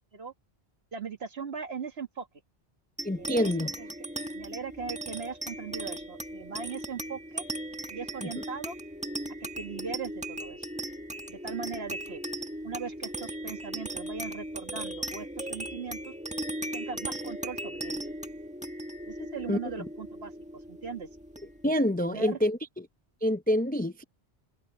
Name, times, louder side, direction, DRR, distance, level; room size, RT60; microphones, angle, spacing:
voice 1, 0.9-2.3 3.2-3.9 4.3-7.4 7.9-8.8 9.4-10.7 11.3-12.2 12.6-16.1 16.7-18.1 19.1-21.1 22.0-22.4, right 5 dB, 70° right, 1.9 m, -39 dB
voice 2, 3.0-3.7 8.2-8.3 19.5-19.8 21.6-22.6 23.2-24.0, equal, 10° left, 0.4 m, -27 dB
sound 1, 3.0-21.8, right 1 dB, 5° right, 1.7 m, -38 dB
omnidirectional pair, 1.1 m